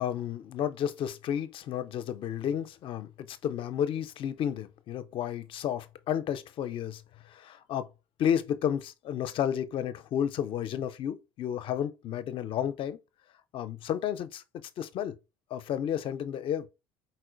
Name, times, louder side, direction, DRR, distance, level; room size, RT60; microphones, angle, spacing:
voice 1, 0.0-7.9 8.2-13.0 13.5-14.4 14.8-15.1 15.5-16.7, left 9 dB, 50° left, 0.5 m, -32 dB
4.2 x 4.2 x 2.5 m
hypercardioid pair, 65°, 12 cm